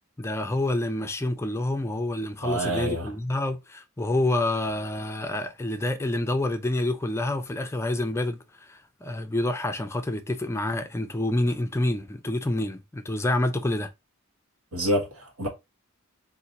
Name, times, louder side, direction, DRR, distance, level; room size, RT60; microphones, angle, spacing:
voice 1, 0.2-13.9, left 1 dB, 10° left, 0.4 m, -28 dB
voice 2, 2.4-3.1 14.7-15.5, right 1 dB, 70° right, 1.6 m, -27 dB
4.0 x 2.6 x 4.0 m
head